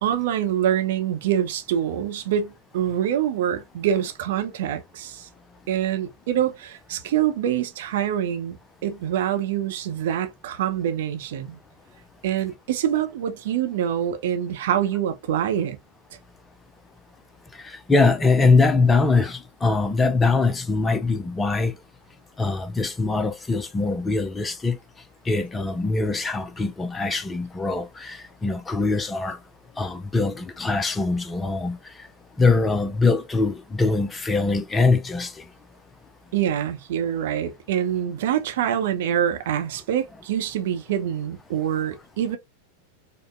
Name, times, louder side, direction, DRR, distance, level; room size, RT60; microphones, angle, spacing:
voice 1, 0.0-5.3 5.7-8.6 8.8-11.6 12.2-15.8 36.3-42.4, right 10 dB, 55° right, 0.7 m, -25 dB
voice 2, 17.9-21.7 22.4-24.8 25.3-29.4 29.8-31.8 32.4-35.3, left 3 dB, 15° left, 0.4 m, -22 dB
4.9 x 2.1 x 2.4 m
figure-of-eight pair, 90°, 0 cm